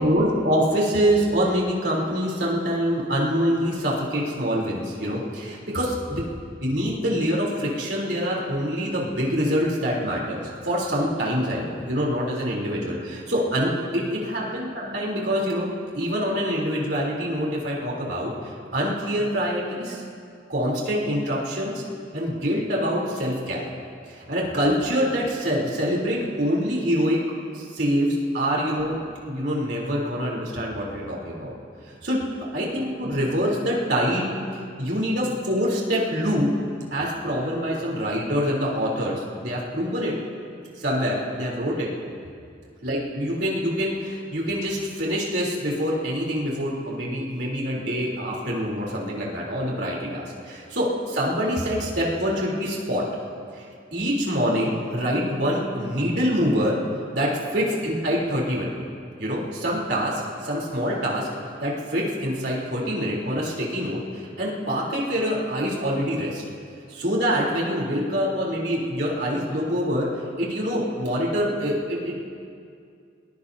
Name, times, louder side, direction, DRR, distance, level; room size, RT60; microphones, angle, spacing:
voice 1, 0.0-6.2 6.6-20.0 20.5-21.8 22.1-23.6 24.1-27.2 27.5-29.0 29.3-31.5 32.0-32.2 32.5-34.3 34.8-36.5 36.9-40.1 40.8-41.9 42.8-53.0 53.5-56.8 57.1-58.7 59.2-61.3 61.6-66.4 66.9-70.1 70.4-72.3, equal, 60° right, -4 dB, 3.6 m, -25 dB
22.0 x 21.0 x 2.8 m, 2.3 s
head